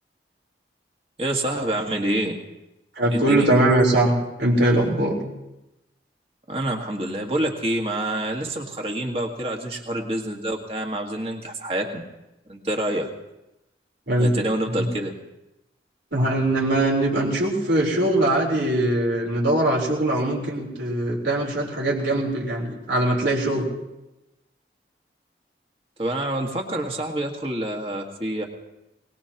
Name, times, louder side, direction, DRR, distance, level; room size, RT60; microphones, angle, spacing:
voice 1, 1.2-2.4 3.1-3.5 6.5-12.0 12.5-13.1 14.2-15.1 26.0-28.4, right 1 dB, 30° right, 1 dB, 1.7 m, -27 dB
voice 2, 3.0-4.1 4.4-5.2 14.1-14.3 14.8-14.9 16.1-23.7, right 1 dB, 80° right, -1 dB, 3.9 m, -21 dB
21.5 x 20.0 x 3.0 m, 0.94 s
head